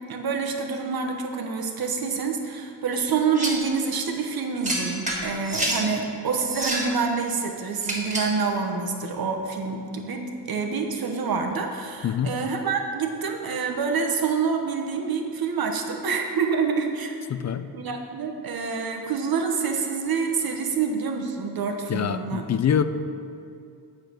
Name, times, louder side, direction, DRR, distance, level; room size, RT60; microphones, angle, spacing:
voice 1, 0.1-17.1 17.7-22.4, right 5 dB, 60° right, 3 dB, 1.1 m, -27 dB
sound 1, 3.3-3.7 4.6-5.8 6.4-7.0 7.8-8.4, right 1 dB, 15° right, 1.7 m, -28 dB
voice 2, 12.0-12.3 17.3-17.7 21.9-22.8, left 8 dB, 40° left, 11 dB, 0.4 m, -24 dB
8.1 x 5.3 x 6.0 m, 2.6 s
cardioid pair, 100°, 42 cm